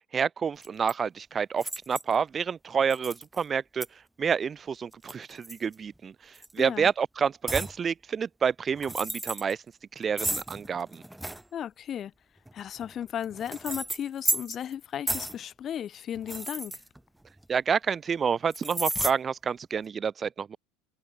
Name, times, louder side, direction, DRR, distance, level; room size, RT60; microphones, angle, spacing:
voice 1, 0.1-3.9 4.2-6.1 6.5-9.6 10.0-11.0 17.5-20.6, right 6 dB, 30° right, 0.7 m, -28 dB
sound 1, 0.6-0.9 1.6-2.1 2.9-3.4 3.8-3.9 4.9-6.0 6.3-6.6 7.5-7.8 8.7-9.5 10.2-11.4 12.5-14.7 15.1-15.4 16.1-17.4 18.5-19.1, right 1 dB, 5° right, 1.3 m, -33 dB
voice 2, 6.6-6.9 11.5-12.1 12.5-16.8, left 9 dB, 40° left, 2.9 m, -35 dB
hypercardioid pair, 85°, 0 cm